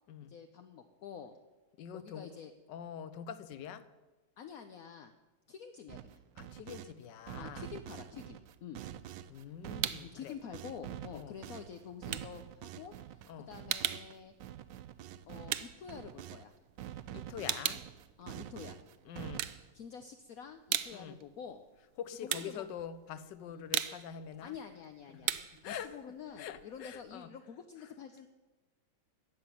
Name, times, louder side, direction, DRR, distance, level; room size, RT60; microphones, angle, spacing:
voice 1, 0.3-1.4 1.9-2.5 4.4-5.1 5.5-6.2 7.4-8.8 10.0-14.3 15.3-16.6 18.2-18.8 19.7-21.6 22.2-22.7 23.5-23.7 24.4-25.3 25.6-28.3, left 7 dB, 65° left, 1.0 m, -48 dB
voice 2, 1.8-2.3 2.7-3.9 6.4-7.7 9.3-10.3 11.1-11.4 13.3-13.5 17.1-17.8 19.1-19.5 20.9-21.2 22.0-24.5 25.1-25.4 25.6-26.0 26.4-27.3 27.8-27.9, left 8 dB, 80° left, 1.4 m, -45 dB
sound 1, 5.9-6.9 7.3-16.4 16.8-19.7, right 11 dB, 90° right, 1.3 m, -47 dB
sound 2, 8.9-10.2 10.5-16.8 17.1-18.8 19.2-20.1 20.4-27.1, right 12 dB, 70° right, 1.1 m, -39 dB
14.5 x 5.9 x 9.8 m
omnidirectional pair, 1.9 m